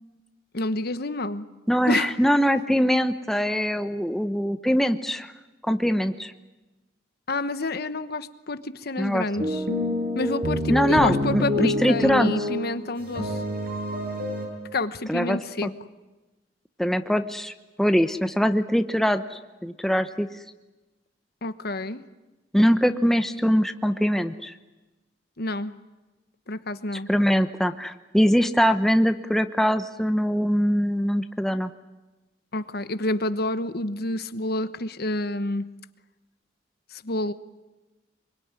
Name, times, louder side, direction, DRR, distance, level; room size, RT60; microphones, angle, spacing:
voice 1, 0.5-1.5 1.9-2.1 7.3-9.6 10.1-13.4 14.7-15.7 21.4-22.0 25.4-25.7 26.5-27.1 32.5-35.7 36.9-37.3, left 2 dB, 60° left, 12 dB, 1.1 m, -29 dB
voice 2, 1.7-5.3 5.6-6.3 9.0-9.3 10.7-12.5 15.1-15.7 16.8-17.5 17.8-20.3 22.5-24.5 27.1-31.7, equal, ahead, 8 dB, 0.9 m, -22 dB
sound 1, 9.4-12.7 13.0-14.5, left 1 dB, 55° right, 7.7 m, -27 dB
25.0 x 23.5 x 9.7 m, 1.1 s
head